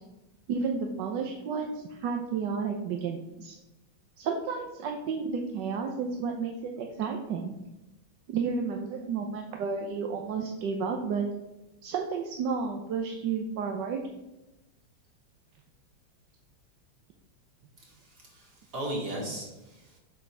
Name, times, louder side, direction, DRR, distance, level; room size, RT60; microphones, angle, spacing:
voice 1, 0.5-3.5 4.2-7.6 8.3-11.3 11.8-14.0, right 5 dB, 65° right, 3 dB, 1.3 m, -32 dB
voice 2, 17.8-20.0, right 1 dB, 50° right, -1 dB, 2.9 m, -37 dB
8.2 x 4.9 x 6.0 m, 0.98 s
omnidirectional pair, 2.2 m